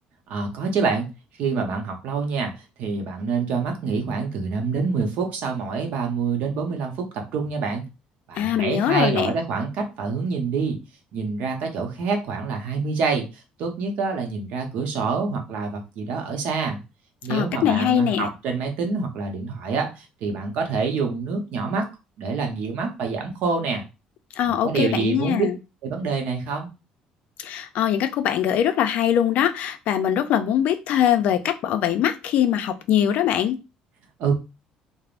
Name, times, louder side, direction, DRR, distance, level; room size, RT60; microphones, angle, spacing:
voice 1, 0.3-1.1 1.4-2.5 2.8-7.8 8.3-10.8 11.1-13.3 13.6-16.8 17.2-21.8 22.2-23.9 24.4-25.5 25.8-26.7 34.2-34.3, right 4 dB, 70° right, 3 dB, 0.8 m, -26 dB
voice 2, 8.4-9.3 17.3-18.3 24.4-25.6 27.4-33.6, left 10 dB, 65° left, 9 dB, 0.4 m, -22 dB
3.4 x 2.0 x 2.5 m, 0.29 s
cardioid pair, 115°, 3 cm